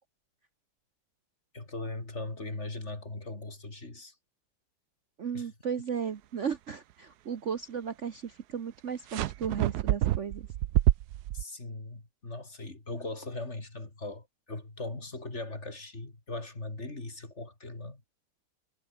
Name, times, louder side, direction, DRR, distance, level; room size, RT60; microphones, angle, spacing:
voice 1, 1.5-4.2 5.3-5.5 11.3-18.0, left 2 dB, 40° left, 4.3 m, -39 dB
voice 2, 5.2-10.5, right 7 dB, 50° right, 1.2 m, -35 dB
sound 1, 9.1-11.4, right 13 dB, 70° right, 1.2 m, -27 dB
omnidirectional pair, 1.9 m